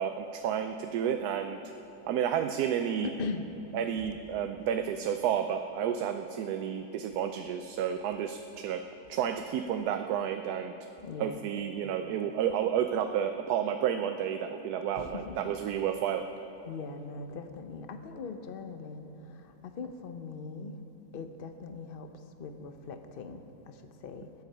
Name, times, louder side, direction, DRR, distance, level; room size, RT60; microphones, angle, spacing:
voice 1, 0.0-1.6 2.1-3.1 3.7-8.8 9.1-10.7 11.2-16.2, right 9 dB, 75° right, 7 dB, 1.1 m, -31 dB
voice 2, 3.0-3.5 11.0-11.4 15.0-15.5 16.7-20.7 21.1-22.1 22.4-23.8 24.0-24.3, left 4 dB, 45° left, 7 dB, 0.8 m, -40 dB
21.0 x 8.3 x 5.6 m, 3.0 s
omnidirectional pair, 1.7 m